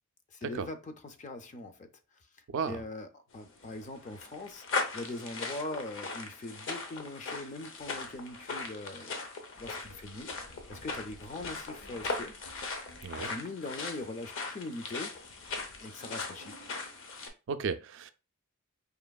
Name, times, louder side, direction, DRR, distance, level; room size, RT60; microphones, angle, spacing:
voice 1, 0.3-1.9 2.7-4.6 4.9-9.1 9.5-10.3 10.7-12.3 13.2-15.2 15.8-16.6, left 2 dB, 35° left, 0.4 m, -41 dB
sound 1, 3.4-17.3, left 3 dB, 60° left, 0.7 m, -39 dB
sound 2, 9.9-13.4, equal, 90° left, 1.0 m, -56 dB
voice 2, 17.5-18.1, right 5 dB, 55° right, 0.3 m, -34 dB
4.9 x 2.9 x 2.3 m
head